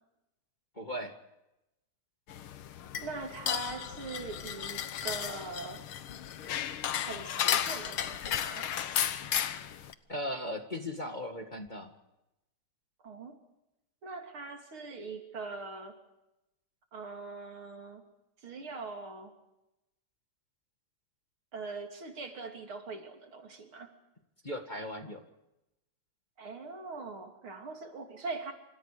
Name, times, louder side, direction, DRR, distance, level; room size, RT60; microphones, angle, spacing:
voice 1, 0.8-1.1 10.1-11.9 24.4-25.2, left 1 dB, 20° left, 4 dB, 1.8 m, -37 dB
sound 1, 2.3-9.9, left 10 dB, 80° left, 1.9 m, -34 dB
voice 2, 3.0-5.9 6.9-8.7 13.0-13.4 14.0-15.9 16.9-18.0 18.4-19.3 21.5-23.9 26.4-28.5, right 3 dB, 75° right, 4 dB, 3.8 m, -42 dB
27.5 x 27.0 x 5.0 m, 0.91 s
omnidirectional pair, 2.3 m